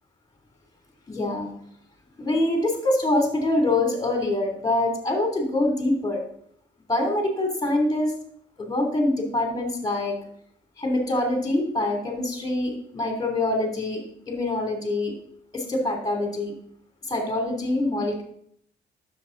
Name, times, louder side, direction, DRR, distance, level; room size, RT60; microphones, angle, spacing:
voice 1, 1.1-1.5 2.2-6.2 6.9-8.1 8.6-10.2 10.8-15.1 15.5-16.5 17.1-18.2, left 2 dB, 20° left, 2 dB, 3.2 m, -25 dB
10.0 x 7.5 x 4.0 m, 0.66 s
cardioid pair, 90°, 20 cm